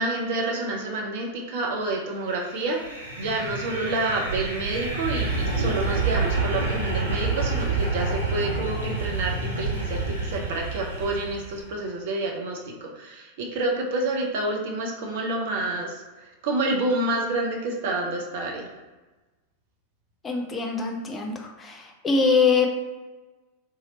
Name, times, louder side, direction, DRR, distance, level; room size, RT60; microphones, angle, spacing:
voice 1, 0.0-18.7, right 2 dB, 50° right, 1 dB, 0.5 m, -28 dB
sound 1, 2.5-11.6, right 3 dB, 90° left, 0.8 m, -28 dB
voice 2, 20.2-22.7, left 5 dB, 20° left, 1 dB, 0.6 m, -23 dB
2.8 x 2.7 x 2.9 m, 1.2 s
figure-of-eight pair, 90°, 0 cm